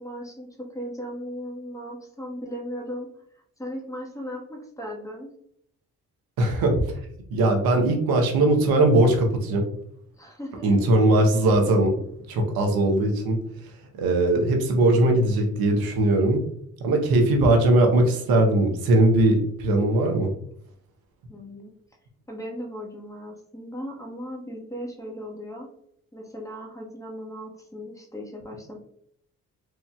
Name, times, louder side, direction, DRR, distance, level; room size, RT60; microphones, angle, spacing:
voice 1, 0.0-3.1 3.6-5.3 10.2-10.7 21.3-21.7 22.3-25.7 26.1-28.8, equal, 10° left, -1 dB, 1.3 m, -37 dB
voice 2, 6.4-7.0 7.3-9.6 10.6-11.9 12.3-13.4 13.9-16.4 16.8-20.3, right 1 dB, 75° right, 3 dB, 0.9 m, -20 dB
4.6 x 2.6 x 2.3 m, 0.69 s
hypercardioid pair, 45°, 37 cm